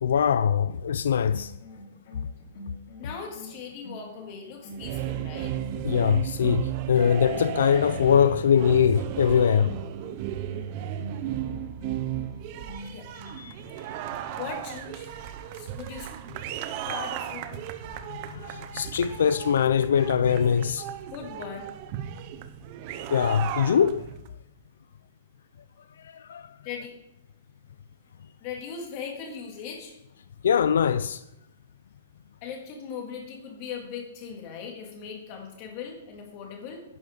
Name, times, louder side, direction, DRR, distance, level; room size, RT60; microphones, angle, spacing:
voice 1, 0.0-1.5 5.8-9.8 13.4-13.6 18.1-20.9 23.1-24.1 26.0-26.5 30.4-31.2, left 8 dB, 85° left, 0.4 m, -22 dB
sound 1, 1.1-6.3 6.9-8.5 9.6-13.4, left 1 dB, 50° left, 2.6 m, -46 dB
voice 2, 3.0-5.5 11.2-11.5 12.9-13.1 14.4-15.1 15.5-16.1 16.9-17.6 21.1-21.7 26.6-27.0 28.4-30.0 32.4-36.8, left 6 dB, 35° left, 2.2 m, -39 dB
sound 2, 4.7-24.3, right 11 dB, 35° right, 0.6 m, -35 dB
11.0 x 6.2 x 5.1 m
hypercardioid pair, 165°, 0 cm